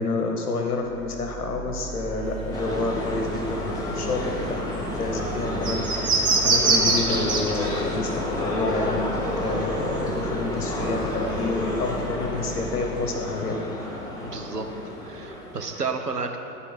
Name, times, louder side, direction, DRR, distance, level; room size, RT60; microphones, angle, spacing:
voice 1, 0.0-9.1 9.4-13.6, left 3 dB, 75° left, 2 dB, 1.1 m, -29 dB
sound 1, 0.7-13.8, right 5 dB, 40° right, 1.9 m, -40 dB
sound 2, 2.3-10.0 10.3-11.9, right 3 dB, 10° right, 0.5 m, -26 dB
sound 3, 2.5-15.8, left 1 dB, 10° left, 1.0 m, -30 dB
voice 2, 14.2-14.7 15.0-16.4, right 4 dB, 85° right, 4 dB, 0.9 m, -31 dB
12.0 x 4.3 x 5.5 m, 2.9 s
figure-of-eight pair, 100°, 46 cm